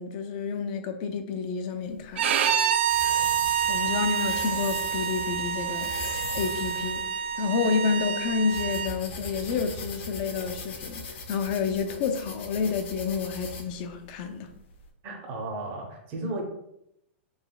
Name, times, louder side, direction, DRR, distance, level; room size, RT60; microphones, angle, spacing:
voice 1, 0.0-2.7 3.7-5.9 6.3-7.0 7.4-14.5, left 5 dB, 40° left, 0.4 m, -29 dB
sound 1, 1.9-14.8, left 2 dB, 65° left, 0.9 m, -40 dB
Bowed string instrument, 2.2-8.9, right 9 dB, 65° right, 0.4 m, -27 dB
voice 2, 15.0-16.4, right 2 dB, 30° right, 0.7 m, -34 dB
3.9 x 3.2 x 2.2 m
hypercardioid pair, 155°, 7 cm